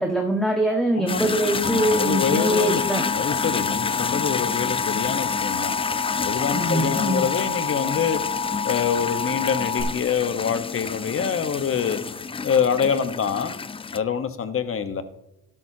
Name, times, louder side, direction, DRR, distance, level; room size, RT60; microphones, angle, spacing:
voice 1, 0.0-3.0 6.5-7.3, right 1 dB, ahead, 1 dB, 1.6 m, -23 dB
voice 2, 0.7-1.2 1.6-2.8 3.1-5.7 6.2-8.2 8.6-12.0 12.4-13.5 13.9-15.0, left 7 dB, 45° left, 10 dB, 1.2 m, -25 dB
sound 1, 1.1-14.0, left 5 dB, 20° left, 0.4 m, -29 dB
Alarm, 1.6-9.8, left 6 dB, 85° left, 2.6 m, -29 dB
13.0 x 12.5 x 2.9 m, 0.93 s
cardioid pair, 90°, 30 cm